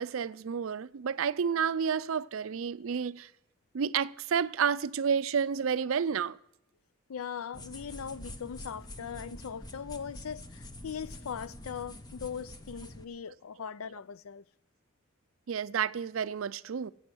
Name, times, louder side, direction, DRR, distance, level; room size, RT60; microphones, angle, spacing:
voice 1, 0.0-3.3 3.7-6.4 15.5-16.9, right 7 dB, 75° right, 0.4 m, -30 dB
voice 2, 7.1-14.4, left 7 dB, 85° left, 0.5 m, -40 dB
sound 1, 7.5-13.0, left 1 dB, 20° left, 0.9 m, -46 dB
16.5 x 8.4 x 6.2 m
head